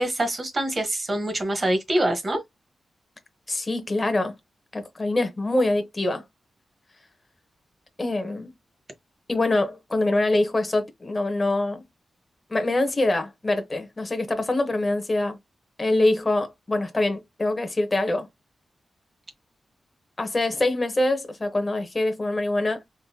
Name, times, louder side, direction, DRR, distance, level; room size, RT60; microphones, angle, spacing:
voice 1, 0.0-2.4, right 1 dB, 30° right, 1.2 m, -25 dB
voice 2, 3.5-4.3 4.7-6.2 8.0-8.5 9.3-11.8 12.5-15.4 15.8-18.3 20.2-22.9, left 2 dB, 25° left, 0.8 m, -24 dB
3.8 x 2.5 x 2.8 m
wide cardioid pair, 130°, 0 cm